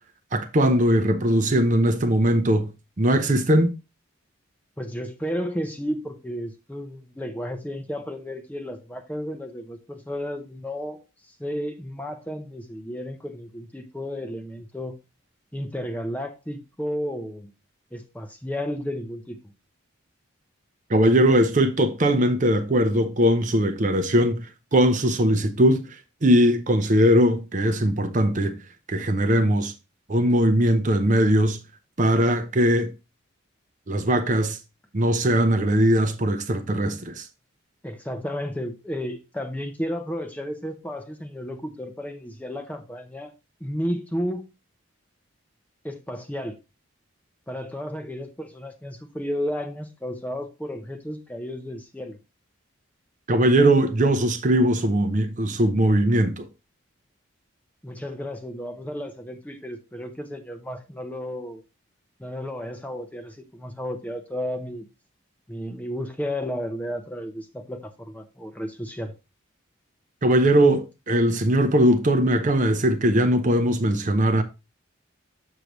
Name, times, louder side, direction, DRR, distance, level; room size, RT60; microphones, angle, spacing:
voice 1, 0.3-2.7 3.0-3.7 20.9-24.4 24.7-25.9 26.2-28.6 28.9-29.7 30.1-31.6 32.0-32.9 33.9-34.6 34.9-37.2 53.3-56.5 70.2-74.4, right 1 dB, 35° right, 0.6 m, -20 dB
voice 2, 4.8-15.0 15.5-17.5 17.9-19.5 37.8-43.3 43.6-44.5 45.8-46.6 47.5-52.2 57.8-61.6 62.2-64.9 65.5-69.1, equal, 5° left, 0.6 m, -33 dB
6.5 x 6.3 x 3.0 m
head